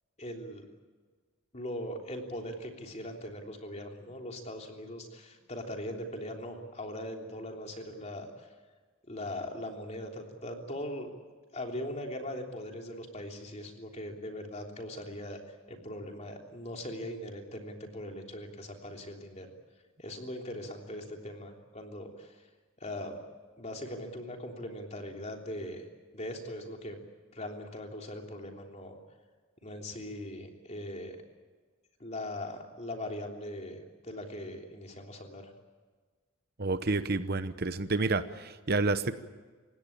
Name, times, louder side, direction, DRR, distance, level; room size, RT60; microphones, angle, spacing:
voice 1, 0.2-0.7 1.5-8.5 9.1-11.1 11.5-19.5 20.0-22.4 22.8-23.2 23.6-25.8 26.1-27.0 27.3-29.0 29.6-31.2 32.0-35.5, left 1 dB, 30° left, 2 dB, 3.3 m, -40 dB
voice 2, 36.6-39.1, right 3 dB, 45° right, 11 dB, 0.9 m, -29 dB
29.0 x 17.0 x 8.8 m, 1.4 s
head